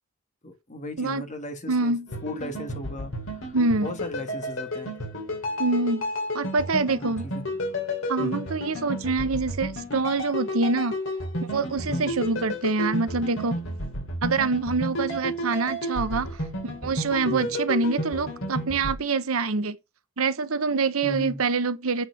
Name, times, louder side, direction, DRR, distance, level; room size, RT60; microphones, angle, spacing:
voice 1, 0.4-1.9 2.2-4.9 6.9-7.4 8.2-8.4 11.9-12.1 17.3-17.5 21.0-21.4, left 1 dB, 35° left, 1.5 m, -36 dB
voice 2, 1.7-2.1 3.5-3.9 5.6-6.0 6.3-7.3 8.1-11.0 11.5-13.6 14.2-16.3 16.8-19.8 20.2-22.1, right 3 dB, 80° right, 0.8 m, -25 dB
sound 1, 2.1-19.0, equal, 65° left, 2.7 m, -32 dB
8.1 x 4.3 x 5.2 m
head